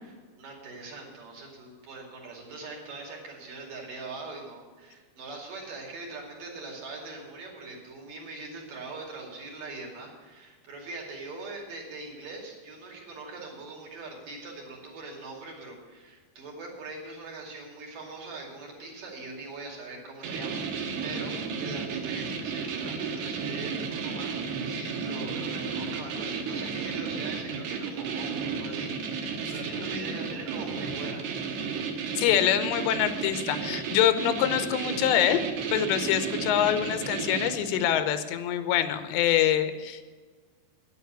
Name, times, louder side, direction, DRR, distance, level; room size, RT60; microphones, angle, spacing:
voice 1, 0.4-31.3, right 3 dB, 55° right, -1 dB, 3.8 m, -42 dB
sound 1, 20.2-38.0, right 5 dB, 75° right, 3.3 m, -33 dB
voice 2, 29.8-30.1 32.2-35.4 35.7-40.0, left 10 dB, 85° left, 10 dB, 3.1 m, -25 dB
9.8 x 9.1 x 9.2 m, 1.5 s
omnidirectional pair, 5.0 m